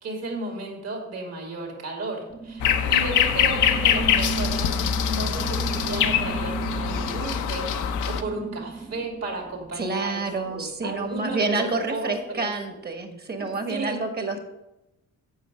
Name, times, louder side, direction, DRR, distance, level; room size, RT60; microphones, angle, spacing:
voice 1, 0.0-4.7 5.0-7.8 8.1-12.5 13.7-14.0, right 2 dB, 55° right, 1 dB, 2.5 m, -33 dB
sound 1, 2.3-10.1, right 4 dB, 10° right, 0.6 m, -35 dB
sound 2, 2.6-8.2, left 8 dB, 80° left, 0.7 m, -23 dB
voice 2, 9.7-14.4, right 3 dB, 30° right, 5 dB, 1.4 m, -28 dB
8.0 x 5.7 x 5.1 m, 0.94 s
cardioid pair, 90°, 30 cm